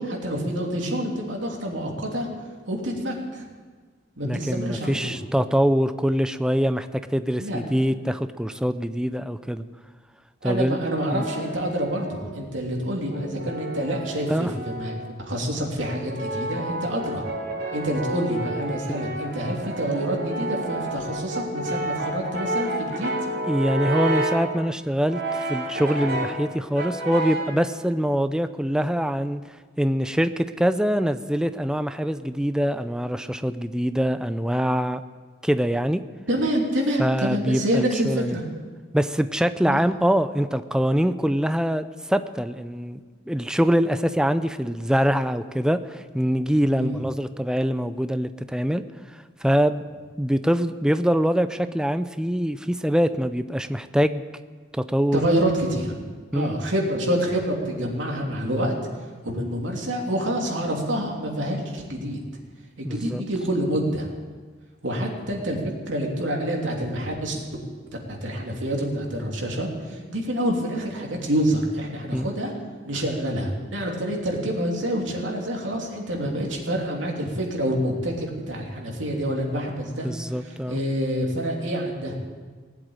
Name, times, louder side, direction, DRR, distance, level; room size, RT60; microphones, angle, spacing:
voice 1, 0.0-2.3 2.7-3.4 4.2-5.2 7.4-7.6 10.4-14.9 15.2-17.2 17.7-23.1 36.3-38.4 39.7-39.8 46.8-47.0 55.1-55.9 56.3-58.7 59.2-62.2 62.8-64.1 64.8-67.4 68.1-72.5 72.8-80.1 80.4-82.2, equal, 80° right, 0 dB, 3.1 m, -27 dB
voice 2, 4.2-9.6 10.4-10.8 11.1-11.3 14.3-14.5 23.5-29.4 29.8-35.0 35.4-36.0 37.0-38.4 38.9-43.0 43.3-48.8 49.1-49.8 50.2-54.2 54.7-55.2 56.3-56.5 62.8-63.2 72.1-72.3 80.0-80.8, equal, 5° right, 11 dB, 0.4 m, -24 dB
Brass instrument, 10.4-12.4 13.1-15.2 15.8-24.5 25.1-26.4 26.7-27.6, right 1 dB, 60° right, 3.6 m, -30 dB
18.5 x 8.0 x 8.9 m, 1.5 s
head